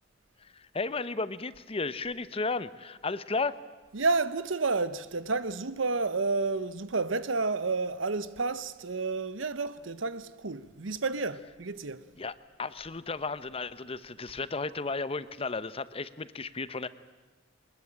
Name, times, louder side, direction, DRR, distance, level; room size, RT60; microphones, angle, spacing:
voice 1, 0.4-3.5 12.2-12.3 12.6-16.9, left 3 dB, 30° left, 0.8 m, -34 dB
voice 2, 3.9-12.0, right 3 dB, 80° right, 1.0 m, -30 dB
22.5 x 20.5 x 8.8 m
head